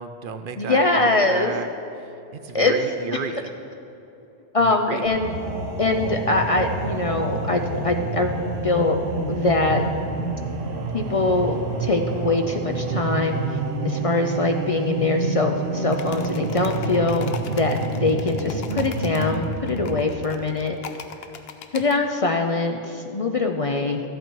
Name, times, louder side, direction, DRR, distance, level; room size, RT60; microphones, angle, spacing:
voice 1, 0.0-1.7 2.0-3.5 4.6-5.1, right 6 dB, 60° right, 9 dB, 0.7 m, -33 dB
voice 2, 0.6-1.6 2.5-2.7 4.5-5.3 5.8-8.4 8.6-9.0 9.3-9.8 10.9-13.4 13.8-20.8 21.7-24.0, left 3 dB, 45° left, 4 dB, 0.5 m, -23 dB
sound 1, 5.1-20.1, right 3 dB, 80° right, 1.2 m, -28 dB
sound 2, 15.9-22.0, left 7 dB, 75° left, 0.9 m, -39 dB
14.0 x 8.2 x 4.6 m, 2.9 s
omnidirectional pair, 1.1 m